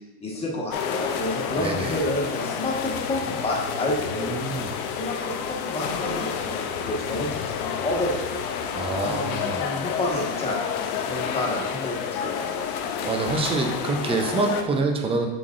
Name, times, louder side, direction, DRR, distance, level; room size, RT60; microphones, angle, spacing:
voice 1, 0.2-4.4 4.9-8.4 9.0-10.6 11.0-12.7, left 1 dB, 15° left, -3 dB, 1.4 m, -30 dB
sound 1, 0.7-14.6, left 7 dB, 65° left, 0.8 m, -30 dB
voice 2, 1.6-2.0 4.1-4.7 8.7-9.7 13.0-15.3, right 3 dB, 15° right, 3 dB, 0.5 m, -26 dB
7.6 x 5.9 x 2.5 m, 1.1 s
supercardioid pair, 135°, 47 cm